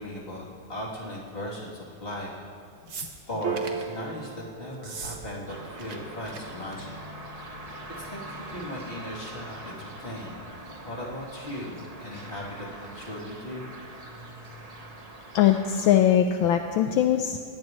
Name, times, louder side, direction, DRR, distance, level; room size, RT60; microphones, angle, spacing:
voice 1, 0.0-2.5 3.3-7.0 8.0-10.4 10.8-13.7, left 1 dB, 25° left, -5 dB, 3.2 m, -37 dB
sound 1, 2.9-3.9 4.7-5.2 5.5-6.0 6.2-6.4 6.7-7.0 8.0-8.1, right 4 dB, 40° right, 1.4 m, -39 dB
Piano, 3.4-10.1, right 6 dB, 80° right, 1.8 m, -40 dB
sound 2, 5.5-16.0, right 1 dB, 25° right, 0.9 m, -43 dB
voice 2, 15.3-17.4, left 10 dB, 75° left, 6 dB, 1.4 m, -21 dB
20.5 x 17.0 x 3.1 m, 2.5 s
omnidirectional pair, 2.3 m